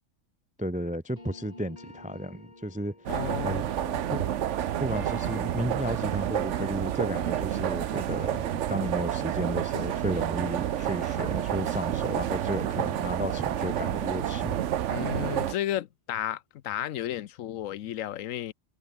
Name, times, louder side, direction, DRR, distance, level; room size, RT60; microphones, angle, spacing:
voice 1, 0.6-2.9 3.4-3.7 4.1-4.2 4.8-14.6, equal, 10° right, 0.3 m, -33 dB
sound 1, 1.2-9.2 9.5-14.5, left 2 dB, 30° left, 2.9 m, -53 dB
voice 2, 3.1-4.1 14.9-18.5, left 12 dB, 80° left, 1.1 m, -33 dB
sound 2, 3.1-15.5, right 11 dB, 65° right, 1.0 m, -29 dB
omnidirectional pair, 1.4 m